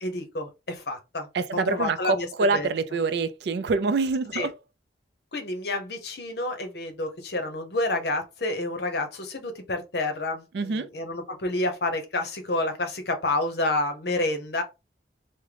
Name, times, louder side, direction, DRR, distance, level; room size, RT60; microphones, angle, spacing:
voice 1, 0.0-1.3 1.7-2.3 2.5-2.7 4.3-4.5 5.3-14.6, left 2 dB, 60° left, 0.8 m, -29 dB
voice 2, 1.3-4.5 10.5-10.9, right 3 dB, 65° right, 0.4 m, -25 dB
3.6 x 2.1 x 3.3 m
head